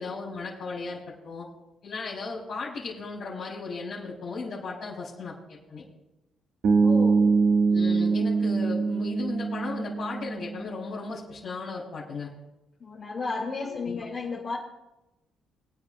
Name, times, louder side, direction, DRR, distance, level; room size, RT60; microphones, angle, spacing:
voice 1, 0.0-1.5 1.8-5.8 7.7-12.3 13.7-14.0, left 4 dB, 60° left, -7 dB, 4.0 m, -36 dB
Bass guitar, 6.6-10.7, right 4 dB, 60° right, 1.7 m, -23 dB
voice 2, 6.8-7.3 12.8-14.6, left 4 dB, 40° left, -5 dB, 2.6 m, -33 dB
24.5 x 9.1 x 2.5 m, 0.97 s
cardioid pair, 105°, 0 cm